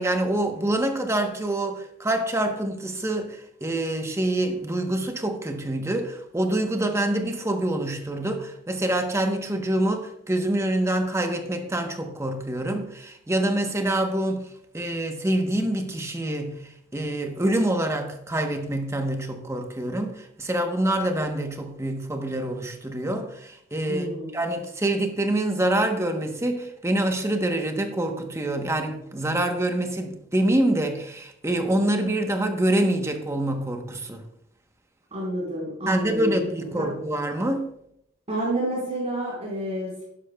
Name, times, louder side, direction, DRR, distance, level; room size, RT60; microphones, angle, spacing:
voice 1, 0.0-14.5 14.7-24.1 24.3-34.2 35.9-37.7, right 1 dB, 15° right, 5 dB, 0.9 m, -26 dB
voice 2, 23.9-24.3 35.1-36.4 36.8-36.9 38.3-40.0, right 1 dB, 35° right, -5 dB, 4.3 m, -29 dB
12.0 x 10.5 x 2.3 m, 0.73 s
head